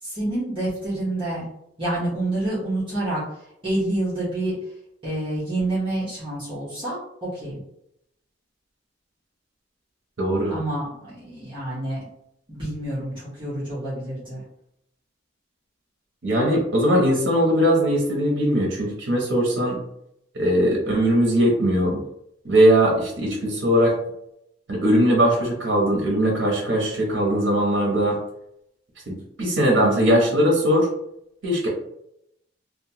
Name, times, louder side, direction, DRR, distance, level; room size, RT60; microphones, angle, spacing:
voice 1, 0.0-1.5 1.8-3.2 3.6-4.5 5.0-7.6 10.5-12.0 12.5-14.4, right 1 dB, 25° right, -10 dB, 0.9 m, -28 dB
voice 2, 10.2-10.5 16.2-19.8 20.3-22.0 22.4-23.9 24.7-28.2 29.1-30.9 31.4-31.7, equal, 70° right, -1 dB, 0.7 m, -20 dB
2.8 x 2.2 x 2.8 m, 0.77 s
head